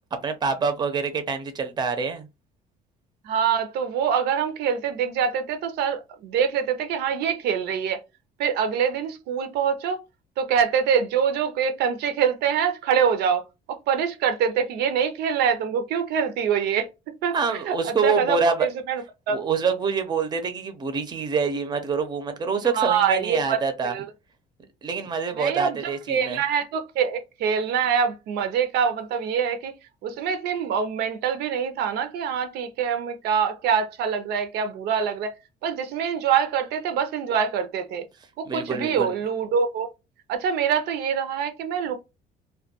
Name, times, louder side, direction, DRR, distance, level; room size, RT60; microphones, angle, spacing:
voice 1, 0.2-2.3 17.3-18.7 19.3-23.9 24.8-26.4 38.5-39.1, right 5 dB, 25° right, 0.5 m, -26 dB
voice 2, 3.2-8.0 8.4-10.0 10.4-13.4 13.7-16.9 17.2-19.4 22.7-24.1 25.3-29.7 30.0-35.3 35.6-38.0 38.4-39.9 40.3-41.9, right 7 dB, 75° right, 0.5 m, -25 dB
2.2 x 2.2 x 2.8 m
cardioid pair, 110°, 17 cm